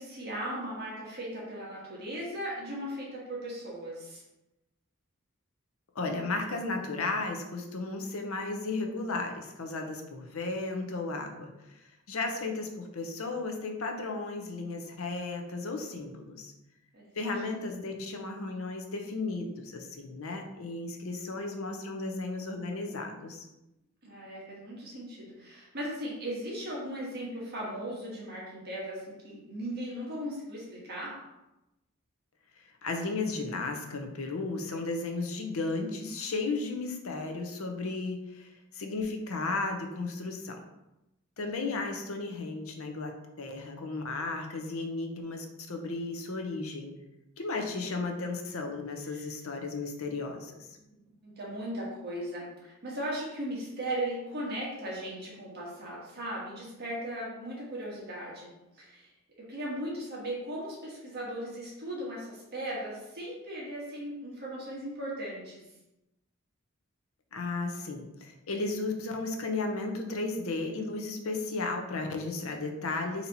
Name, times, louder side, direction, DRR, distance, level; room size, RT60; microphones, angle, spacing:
voice 1, 0.0-4.2 16.9-17.4 24.0-31.4 49.1-49.2 50.9-51.0 51.2-59.1 59.4-65.7, right 1 dB, 50° right, -5 dB, 1.3 m, -38 dB
voice 2, 5.9-11.5 12.1-16.5 17.2-23.5 32.8-40.6 41.4-46.9 47.4-50.7 67.3-73.3, left 3 dB, 85° left, 3 dB, 0.7 m, -34 dB
4.1 x 2.9 x 4.0 m, 0.94 s
head